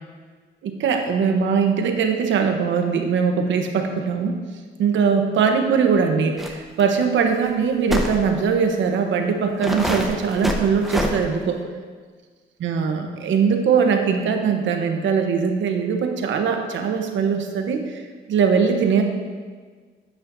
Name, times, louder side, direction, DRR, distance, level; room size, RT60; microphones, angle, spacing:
voice 1, 0.6-4.3 4.8-11.6 12.6-18.0 18.3-19.0, right 6 dB, 70° right, 5 dB, 1.0 m, -21 dB
sound 1, 6.4-6.5 6.8-6.9 7.9-8.2 8.9-9.0 9.6-11.1, equal, ahead, 1.1 m, -24 dB
9.7 x 8.6 x 2.7 m, 1.5 s
cardioid pair, 90°, 20 cm